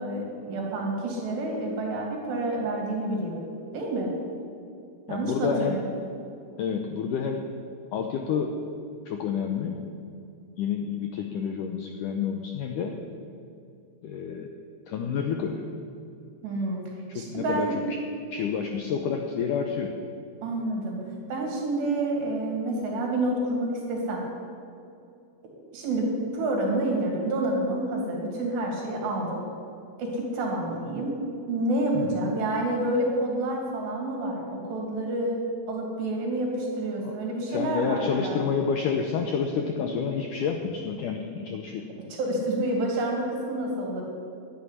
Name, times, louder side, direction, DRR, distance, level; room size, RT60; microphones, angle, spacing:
voice 1, 0.0-4.1 5.1-5.8 16.4-16.8 17.1-17.8 20.4-21.0 21.3-24.2 25.4-29.4 30.0-31.2 31.5-35.4 35.7-38.4 42.1-44.0, right 1 dB, 80° right, -1 dB, 4.9 m, -28 dB
voice 2, 5.1-5.8 6.6-7.4 7.9-8.5 9.1-9.8 10.6-13.0 14.0-14.5 14.9-15.7 17.1-17.7 18.3-19.9 31.9-32.3 37.0-37.1 37.5-41.8, left 6 dB, 85° left, 4 dB, 1.8 m, -29 dB
11.5 x 9.6 x 9.9 m, 2.5 s
omnidirectional pair, 4.8 m